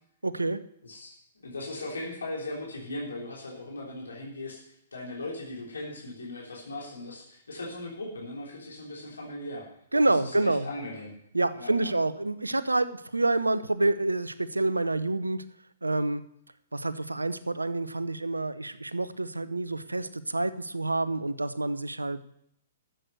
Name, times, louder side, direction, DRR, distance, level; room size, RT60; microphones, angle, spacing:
voice 1, 0.2-0.6 9.9-10.7 11.3-15.4 15.8-16.2 16.7-22.2, right 2 dB, 90° right, 15 dB, 0.7 m, -27 dB
voice 2, 0.8-4.6 4.9-9.6 10.1-11.1 11.5-11.9, left 2 dB, 75° left, -3 dB, 3.5 m, -38 dB
13.0 x 7.9 x 6.6 m, 0.72 s
figure-of-eight pair, 120°, 0 cm